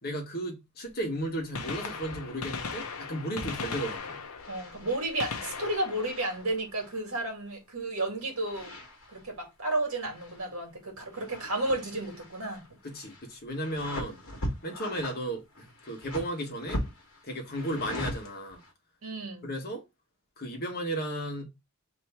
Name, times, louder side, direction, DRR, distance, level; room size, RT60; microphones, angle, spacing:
voice 1, 0.0-4.2 12.8-14.2 14.6-16.8 17.3-18.6 19.4-19.8 20.4-21.4, right 1 dB, 45° left, 1.4 m, -34 dB
Gunshot gunfire, 0.9-1.0 1.4-7.3 9.2-9.3 10.4-10.5 12.0-12.1 13.5-13.6 13.8-13.9, left 5 dB, 85° left, 0.7 m, -39 dB
sound 1, 2.0-2.3 2.6-3.0 3.4-4.0 4.4-7.1 8.3-9.4 9.7-10.7 11.0-18.7, left 1 dB, 65° left, 1.4 m, -41 dB
voice 2, 4.5-8.7 9.1-12.7 19.0-19.5, right 2 dB, 75° right, 1.9 m, -32 dB
3.5 x 3.0 x 4.2 m
head